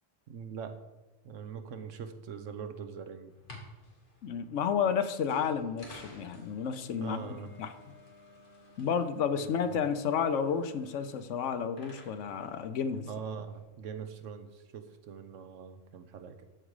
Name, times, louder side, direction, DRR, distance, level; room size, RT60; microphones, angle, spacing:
voice 1, 0.3-0.8 1.2-3.3 7.0-7.5 13.0-16.4, right 7 dB, 75° right, 9 dB, 1.1 m, -42 dB
sound 1, 3.3-13.6, left 1 dB, 40° left, 1.9 m, -55 dB
voice 2, 4.2-7.3 7.6-7.7 8.8-13.1, left 7 dB, 75° left, 10 dB, 1.0 m, -31 dB
12.5 x 5.0 x 4.8 m, 1.1 s
omnidirectional pair, 1.3 m